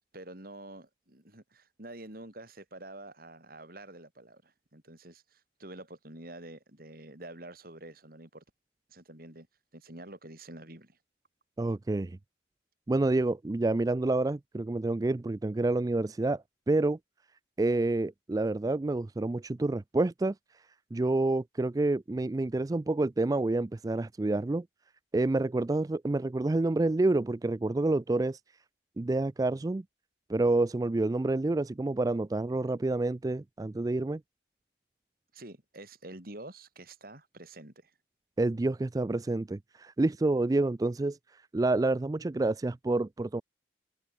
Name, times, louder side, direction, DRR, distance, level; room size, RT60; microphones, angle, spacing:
voice 1, 0.1-8.4 8.9-9.5 9.7-11.0 35.3-37.9, right 1 dB, 55° right, 4.4 m, -47 dB
voice 2, 11.6-12.2 12.9-17.0 17.6-20.6 20.9-24.6 25.1-28.4 29.0-29.8 30.3-34.2 38.4-43.4, right 2 dB, 20° right, 0.3 m, -28 dB
head